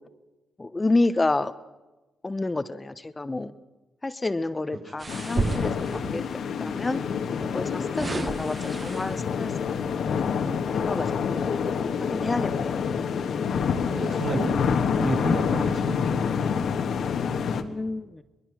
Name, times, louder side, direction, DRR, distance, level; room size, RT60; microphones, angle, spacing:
voice 1, 0.6-1.5 2.2-3.5 4.0-6.2 6.6-7.0 7.5-11.5 12.0-13.0 17.2-18.2, left 2 dB, 25° left, 12 dB, 0.9 m, -30 dB
sound 1, 5.0-6.3 7.3-9.4 9.9-10.1, right 3 dB, 35° right, 1.1 m, -32 dB
sound 2, 5.1-17.6, left 6 dB, 75° left, 1.5 m, -27 dB
voice 2, 8.0-8.3 13.9-14.7 15.0-16.3, right 2 dB, 70° right, -1 dB, 7.5 m, -31 dB
25.0 x 20.0 x 6.2 m, 1.1 s
cardioid pair, 65°, 0 cm